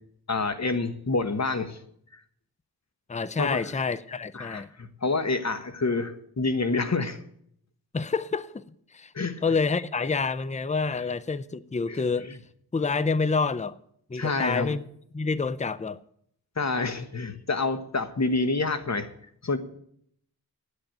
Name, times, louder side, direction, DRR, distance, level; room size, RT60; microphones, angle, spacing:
voice 1, 0.3-1.8 2.1-2.2 3.4-3.6 4.3-7.2 9.1-9.4 11.9-12.0 14.1-14.7 16.6-19.1 19.4-19.6, left 3 dB, 45° left, 1.3 m, -27 dB
voice 2, 3.1-4.7 7.9-8.6 8.9-9.1 9.4-12.3 12.7-13.8 14.1-14.9 15.1-16.0, left 4 dB, 20° left, 0.5 m, -27 dB
9.8 x 8.2 x 8.9 m
wide cardioid pair, 60°, 38 cm